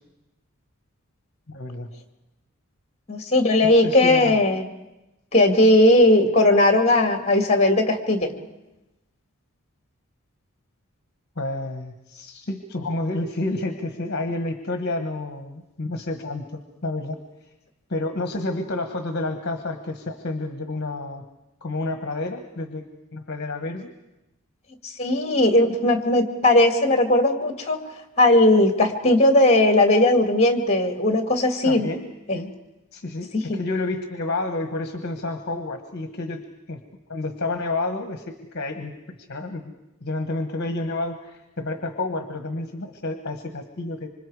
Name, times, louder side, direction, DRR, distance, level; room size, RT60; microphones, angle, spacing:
voice 1, 1.5-1.9 3.6-4.4 11.4-17.2 17.9-21.2 21.6-23.9 31.6-32.0 32.3-32.5 32.9-36.4 36.7-36.8 37.1-39.6 40.0-44.1, left 2 dB, 50° left, 6 dB, 1.3 m, -30 dB
voice 2, 3.1-4.7 5.3-8.3 25.0-27.8 28.2-31.9 33.3-33.6, left 1 dB, 30° left, 5 dB, 2.2 m, -18 dB
26.0 x 25.5 x 4.9 m, 0.97 s
head